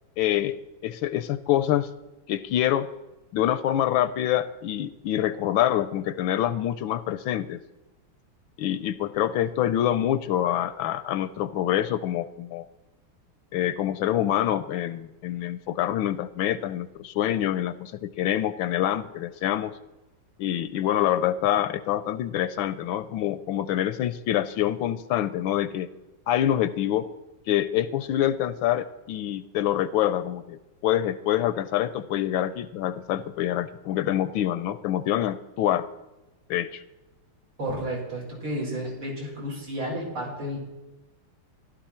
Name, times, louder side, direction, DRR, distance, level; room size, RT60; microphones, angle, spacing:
voice 1, 0.2-0.6 0.8-1.9 2.3-2.9 3.3-7.6 8.6-12.7 13.5-19.7 20.4-25.9 26.3-27.1 27.5-35.9 36.5-36.8, left 12 dB, 75° left, 14 dB, 1.3 m, -26 dB
voice 2, 37.6-40.6, equal, 75° right, -4 dB, 5.8 m, -32 dB
14.5 x 12.0 x 4.3 m, 1.1 s
omnidirectional pair, 2.3 m